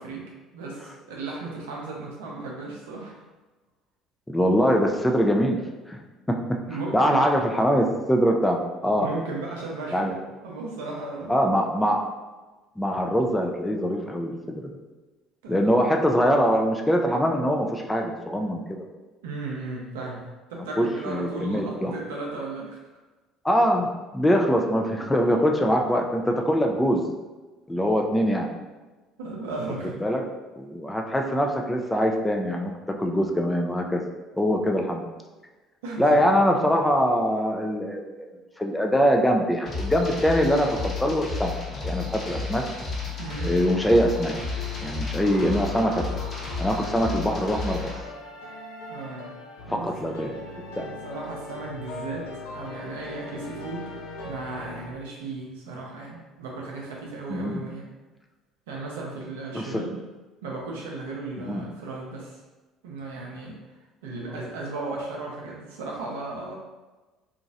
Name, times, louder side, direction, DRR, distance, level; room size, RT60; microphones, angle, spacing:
voice 1, 0.0-3.1 6.6-7.4 9.0-11.3 15.4-15.7 19.2-22.8 25.0-25.1 29.2-30.0 35.8-36.3 43.2-43.5 47.0-47.1 48.9-49.3 49.7-49.9 50.8-53.9 54.2-57.9 58.7-60.0 60.4-62.4 62.8-63.6 64.0-66.6, right 3 dB, 75° right, -2 dB, 0.6 m, -35 dB
voice 2, 4.3-5.6 5.9-6.0 6.3-6.4 6.9-9.1 9.9-10.1 11.3-12.0 12.8-14.7 15.5-18.8 20.8-21.9 23.4-27.1 27.7-28.5 30.0-30.2 30.6-32.7 33.0-34.0 34.3-35.1 36.0-38.3 38.6-41.6 41.8-42.6 43.4-44.3 44.8-46.0 46.6-47.9 49.7-50.3 50.8-50.9 57.3-57.6 59.5-59.6 61.5-61.6, equal, 10° left, 1 dB, 0.4 m, -23 dB
sound 1, 39.7-48.0, left 4 dB, 40° left, 0.9 m, -32 dB
sound 2, 43.6-54.9, left 2 dB, 75° left, 0.5 m, -40 dB
2.9 x 2.4 x 2.7 m, 1.2 s
hypercardioid pair, 60°, 0 cm